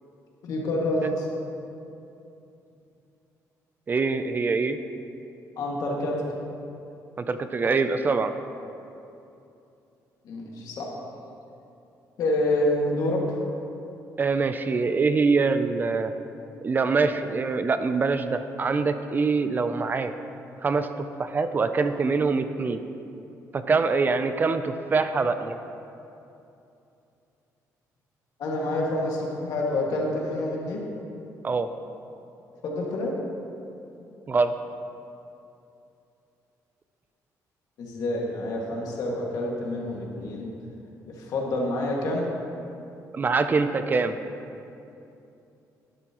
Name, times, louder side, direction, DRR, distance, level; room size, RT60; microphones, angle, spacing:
voice 1, 0.4-1.2 5.6-6.2 10.3-10.9 12.2-13.4 28.4-30.9 32.6-33.1 37.8-40.5 41.0-42.3, left 1 dB, 70° left, -2 dB, 2.0 m, -27 dB
voice 2, 3.9-4.8 7.2-8.3 14.2-16.1 16.6-20.1 20.6-20.9 21.2-22.8 23.5-25.6 31.4-31.7 34.3-34.5 43.1-44.2, right 4 dB, 30° right, 9 dB, 0.5 m, -24 dB
11.5 x 11.0 x 3.0 m, 2.8 s
cardioid pair, 130°, 7 cm